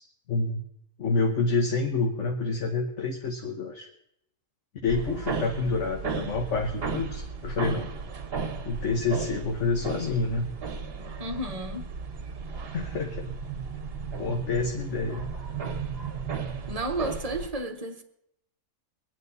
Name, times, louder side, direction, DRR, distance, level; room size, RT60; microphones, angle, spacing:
voice 1, 0.3-0.6 1.0-3.9 4.8-7.9 8.6-10.5 12.7-13.3 14.2-15.3, left 3 dB, 60° left, 1.5 m, -28 dB
sound 1, 4.9-17.5, right 5 dB, 50° right, 1.2 m, -35 dB
voice 2, 11.2-11.9 16.7-18.0, right 1 dB, 30° right, 1.1 m, -32 dB
23.0 x 9.4 x 4.1 m
omnidirectional pair, 1.4 m